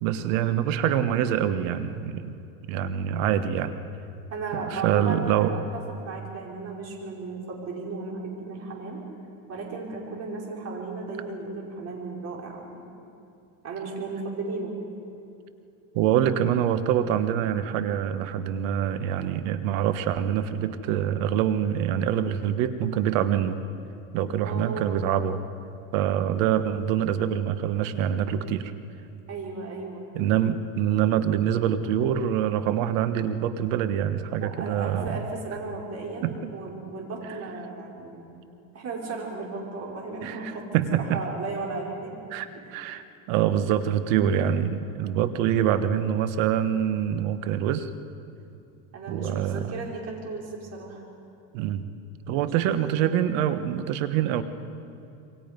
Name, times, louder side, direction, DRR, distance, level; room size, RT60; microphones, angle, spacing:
voice 1, 0.0-2.3 2.7-3.8 4.5-5.5 15.9-23.6 24.1-25.4 25.9-28.7 30.1-35.2 36.2-36.5 40.2-41.2 42.3-47.9 49.1-49.7 51.5-51.8 52.3-54.4, right 10 dB, 65° right, 11 dB, 1.4 m, -25 dB
voice 2, 4.3-5.6 6.0-9.0 9.5-12.9 13.6-14.7 24.4-25.1 29.3-30.1 34.4-38.3 38.7-40.8 41.1-42.2 42.5-42.8 44.8-45.1 48.9-51.0 52.3-53.1, right 3 dB, 35° right, -1 dB, 5.2 m, -35 dB
27.5 x 23.5 x 5.3 m, 2.7 s
supercardioid pair, 120°, 41 cm